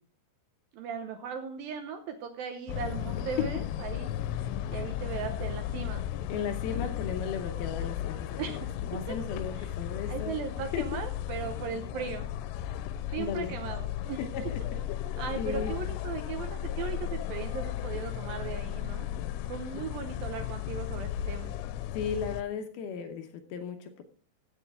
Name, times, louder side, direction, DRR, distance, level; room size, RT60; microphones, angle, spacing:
voice 1, 0.7-4.1 4.7-6.0 8.4-8.7 9.1-9.2 9.6-9.7 10.1-12.3 13.1-14.2 15.2-19.1 19.5-21.5, right 7 dB, 75° right, 7 dB, 2.2 m, -37 dB
sound 1, 2.7-22.4, left 11 dB, 90° left, 2.9 m, -35 dB
voice 2, 6.3-8.6 8.9-10.4 10.7-10.8 13.2-13.5 14.3-14.6 15.4-15.7 19.7-19.8 21.9-24.0, left 6 dB, 75° left, 6 dB, 2.5 m, -35 dB
15.5 x 7.3 x 3.5 m, 0.43 s
omnidirectional pair, 5.0 m